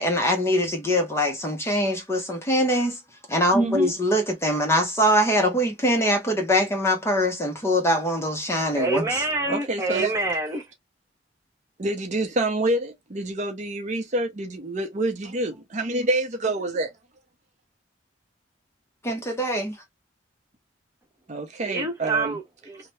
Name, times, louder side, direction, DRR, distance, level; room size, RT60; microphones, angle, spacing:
voice 1, 0.0-3.0 3.3-9.0 19.0-19.8, equal, 15° left, 0.7 m, -23 dB
voice 2, 3.6-3.9 9.5-10.1 11.8-16.9 21.3-22.4, right 1 dB, 40° right, 0.6 m, -27 dB
voice 3, 8.7-10.7 21.6-22.9, right 3 dB, 15° right, 1.0 m, -27 dB
2.8 x 2.1 x 3.1 m
head